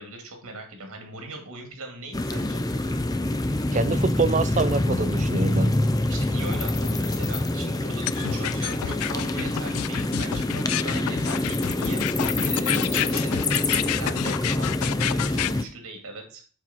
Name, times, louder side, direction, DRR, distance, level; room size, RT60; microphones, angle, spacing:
voice 1, 0.0-2.6 6.1-16.4, right 2 dB, 90° right, 2.2 m, -40 dB
sound 1, 2.1-15.6, left 1 dB, 15° left, 0.5 m, -26 dB
voice 2, 3.7-5.8, right 3 dB, 35° right, 0.5 m, -25 dB
sound 2, 8.1-15.5, left 12 dB, 90° left, 0.3 m, -29 dB
7.5 x 5.5 x 4.2 m
head